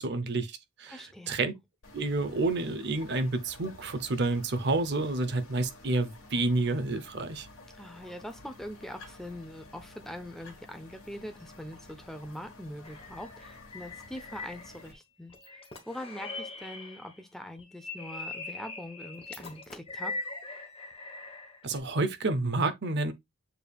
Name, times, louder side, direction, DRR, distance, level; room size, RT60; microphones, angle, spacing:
voice 1, 0.0-1.5 1.9-7.5 21.6-23.1, right 2 dB, 50° right, 0.6 m, -29 dB
voice 2, 0.9-1.4 7.7-15.6 15.9-20.1, equal, ahead, 0.5 m, -43 dB
sound 1, 1.8-14.9, left 2 dB, 70° left, 1.4 m, -51 dB
sound 2, 12.8-15.0 15.3-17.2 17.6-21.8, left 3 dB, 25° left, 1.0 m, -41 dB
6.8 x 3.4 x 2.3 m
head